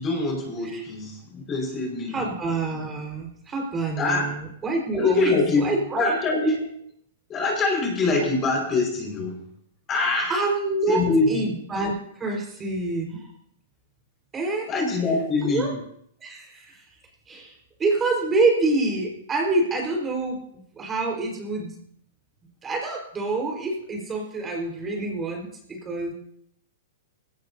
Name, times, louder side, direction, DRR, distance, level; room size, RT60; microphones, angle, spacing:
voice 1, 0.0-2.3 4.0-4.2 4.9-6.7 7.3-9.4 9.9-10.3 10.9-11.5 14.7-15.8, left 3 dB, 25° left, 1 dB, 5.3 m, -24 dB
voice 2, 2.1-6.1 10.3-13.2 14.3-14.7 15.4-15.7 16.2-16.8 17.3-21.7 22.6-26.1, right 2 dB, 20° right, 0 dB, 4.7 m, -27 dB
19.0 x 17.5 x 2.8 m, 0.67 s
hypercardioid pair, 140°, 0 cm